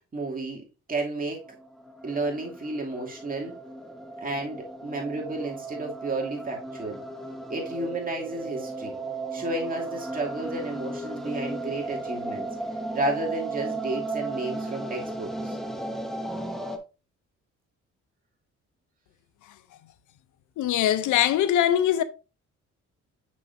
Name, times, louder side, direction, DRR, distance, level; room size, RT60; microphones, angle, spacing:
voice 1, 0.1-1.4 2.0-3.5 4.2-7.0 7.5-9.0 9.3-12.5 12.9-15.6, right 2 dB, 30° right, 2.5 m, -32 dB
sound 1, 1.3-16.8, right 2 dB, ahead, 1.1 m, -35 dB
voice 2, 20.6-22.0, left 11 dB, 75° left, 0.7 m, -22 dB
6.7 x 6.4 x 2.6 m
cardioid pair, 90°, 30 cm